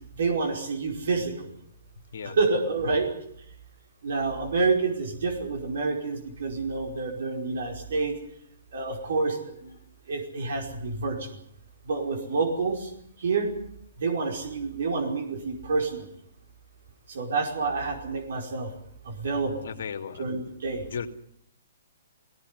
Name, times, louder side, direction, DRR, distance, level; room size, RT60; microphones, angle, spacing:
voice 1, 0.2-1.5 2.2-3.1 4.0-8.1 8.7-9.4 9.6-9.7 10.1-11.2 11.9-12.9 13.2-13.5 14.0-16.1 17.1-18.7 19.0-19.6 20.2-20.8, right 4 dB, 70° right, 2 dB, 5.0 m, -28 dB
voice 2, 19.6-20.2 20.8-21.1, left 7 dB, 70° left, 5 dB, 2.5 m, -35 dB
19.5 x 17.5 x 9.7 m, 0.71 s
hypercardioid pair, 155°, 0 cm